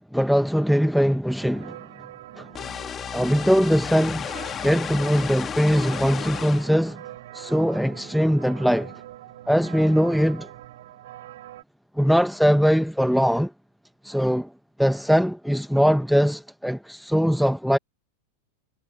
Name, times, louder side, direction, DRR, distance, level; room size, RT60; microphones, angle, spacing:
voice 1, 0.1-1.8 2.4-2.5 3.1-4.3 4.6-7.0 7.3-8.9 9.5-10.5 12.0-13.5 14.0-14.5 14.8-17.8, equal, ahead, 1.4 m, -21 dB
sound 1, 1.4-11.6, right 14 dB, 55° right, 7.8 m, -43 dB
sound 2, 2.5-6.7, left 8 dB, 25° left, 2.1 m, -33 dB
figure-of-eight pair, 90°, 0 cm